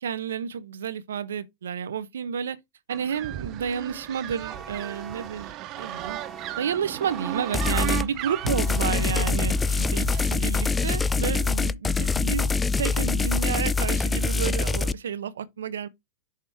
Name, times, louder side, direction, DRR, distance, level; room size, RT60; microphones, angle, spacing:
voice 1, 0.0-2.6 2.9-5.5 5.8-6.2 6.6-12.5 12.8-15.9, right 7 dB, 85° right, 0.9 m, -31 dB
sound 1, 2.9-10.3, right 14 dB, 45° right, 0.7 m, -36 dB
sound 2, 4.5-9.8, right 6 dB, 15° right, 1.2 m, -43 dB
sound 3, 7.5-8.1 8.5-14.9, left 4 dB, 15° left, 0.4 m, -24 dB
6.6 x 5.2 x 3.5 m
hypercardioid pair, 115°, 0 cm